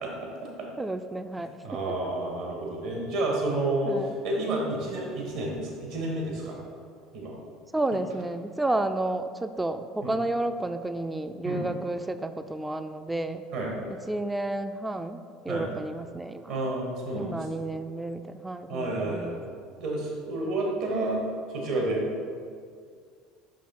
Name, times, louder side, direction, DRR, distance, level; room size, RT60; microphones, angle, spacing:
voice 1, 0.0-0.7 1.6-6.6 7.1-7.4 10.0-10.1 11.4-11.6 13.5-13.7 15.5-15.6 16.5-17.6 18.7-19.4 19.8-21.2 21.5-22.0, right 2 dB, 70° right, -1 dB, 1.5 m, -30 dB
voice 2, 0.8-1.5 3.9-4.1 7.7-13.4 14.1-16.5 17.1-19.4, right 2 dB, 10° right, 9 dB, 0.4 m, -31 dB
6.2 x 5.6 x 4.3 m, 2.1 s
figure-of-eight pair, 65°, 0 cm